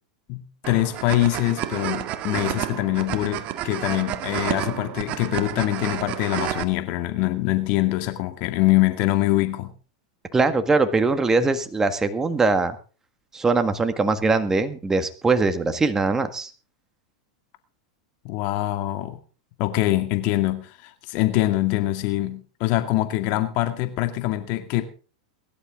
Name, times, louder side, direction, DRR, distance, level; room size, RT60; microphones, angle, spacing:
voice 1, 0.3-9.7 18.2-19.2 19.6-24.8, left 16 dB, 50° left, 2.2 m, -24 dB
sound 1, 0.6-6.6, right 12 dB, 45° right, 1.8 m, -30 dB
voice 2, 10.3-12.8 13.3-16.5, right 3 dB, 15° right, 1.7 m, -21 dB
22.0 x 11.5 x 3.8 m
hypercardioid pair, 105°, 3 cm